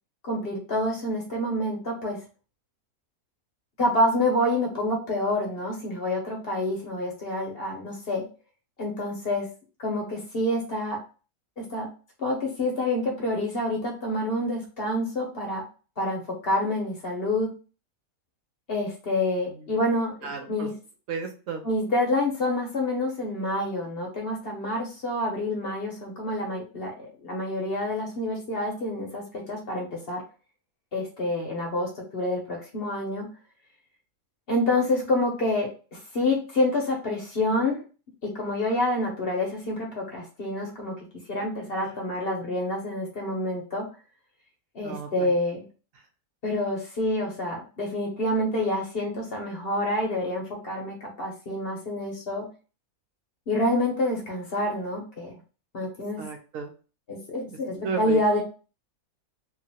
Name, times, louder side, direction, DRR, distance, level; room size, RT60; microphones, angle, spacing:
voice 1, 0.2-2.2 3.8-8.2 8.8-9.5 9.8-11.0 11.6-11.9 12.2-15.6 16.0-17.6 18.7-20.7 21.6-30.2 30.9-33.3 34.5-37.8 38.2-43.9 44.7-45.7 46.4-52.5 53.5-55.3 55.7-56.2 57.1-58.4, left 1 dB, 50° left, 0 dB, 0.8 m, -27 dB
voice 2, 20.2-20.7 21.1-21.6 44.8-45.3 56.2-56.7 57.8-58.2, right 5 dB, 70° right, 5 dB, 0.9 m, -33 dB
2.9 x 2.4 x 2.7 m, 0.35 s
omnidirectional pair, 1.5 m